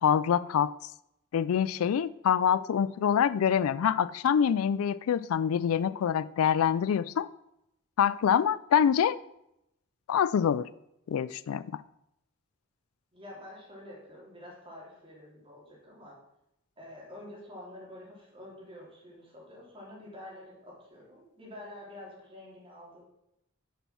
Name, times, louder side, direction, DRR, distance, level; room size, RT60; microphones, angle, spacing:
voice 1, 0.0-0.7 1.3-7.3 8.0-9.2 10.1-10.7 11.1-11.8, left 8 dB, 85° left, 0.3 m, -25 dB
voice 2, 13.1-16.2 16.8-23.0, left 1 dB, 25° right, 3.2 m, -48 dB
6.7 x 6.2 x 6.1 m
head